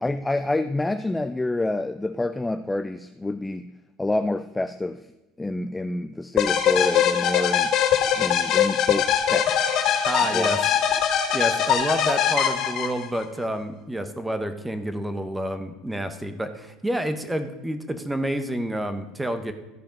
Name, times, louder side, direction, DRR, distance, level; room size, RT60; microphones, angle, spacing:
voice 1, 0.0-3.7 4.0-5.0 5.4-7.7 8.2-9.6 10.3-10.5, left 2 dB, 10° left, 9 dB, 0.3 m, -27 dB
sound 1, 6.4-13.2, left 9 dB, 55° left, 2.9 m, -22 dB
voice 2, 10.0-10.6 11.3-19.5, right 1 dB, 5° right, 9 dB, 0.9 m, -29 dB
14.0 x 5.1 x 5.2 m, 1.1 s
cardioid pair, 130°, 0 cm